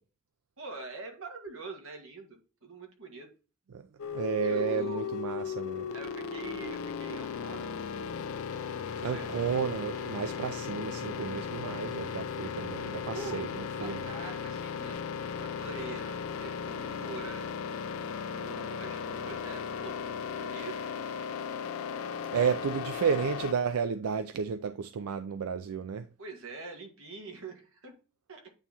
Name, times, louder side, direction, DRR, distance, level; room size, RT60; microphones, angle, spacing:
voice 1, 0.6-3.3 4.4-5.3 5.9-7.7 9.1-9.3 13.1-17.5 18.3-20.8 26.2-28.0 28.3-28.5, right 4 dB, 65° right, 1.8 m, -44 dB
sound 1, 4.0-23.5, left 6 dB, 65° left, 0.4 m, -36 dB
voice 2, 4.1-5.9 9.0-14.1 22.3-26.1, right 6 dB, 85° right, 0.4 m, -32 dB
8.9 x 3.0 x 4.1 m
head